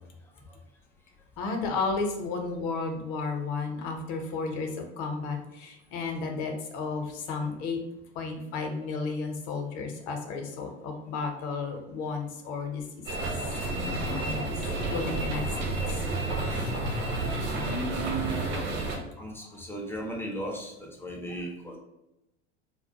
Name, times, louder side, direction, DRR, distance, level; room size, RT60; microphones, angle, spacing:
voice 1, 1.4-7.8 8.1-13.3 13.7-16.0 16.5-16.7, left 4 dB, 50° left, 3 dB, 0.6 m, -33 dB
sound 1, 13.1-19.0, right 2 dB, 60° right, 0.8 m, -30 dB
voice 2, 17.5-18.4 19.2-21.8, right 2 dB, 5° left, -1 dB, 0.3 m, -36 dB
2.1 x 2.1 x 2.7 m, 0.92 s
hypercardioid pair, 95°, 35 cm